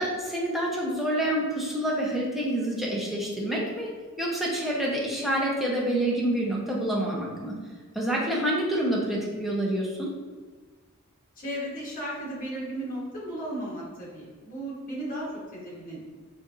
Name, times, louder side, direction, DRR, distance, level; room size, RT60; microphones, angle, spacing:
voice 1, 0.0-3.9 4.2-7.6 7.9-10.1, right 1 dB, ahead, -4 dB, 0.5 m, -27 dB
voice 2, 11.4-16.1, right 1 dB, 40° left, -7 dB, 1.1 m, -35 dB
4.1 x 2.5 x 2.4 m, 1.4 s
head